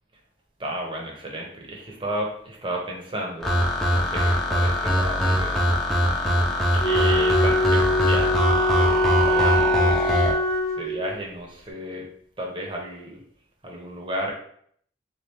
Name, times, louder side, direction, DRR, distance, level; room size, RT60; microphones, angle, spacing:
voice 1, 0.6-3.5 3.8-5.7 6.0-6.2 6.7-8.4 8.7-10.3 10.8-12.1 12.4-13.2 13.6-14.3, right 1 dB, 30° right, -1 dB, 0.8 m, -33 dB
sound 1, 3.4-10.3, equal, ahead, 0.6 m, -22 dB
Wind instrument woodwind instrument, 6.8-11.2, left 1 dB, 35° left, 0.7 m, -23 dB
3.6 x 2.9 x 3.5 m, 0.64 s
head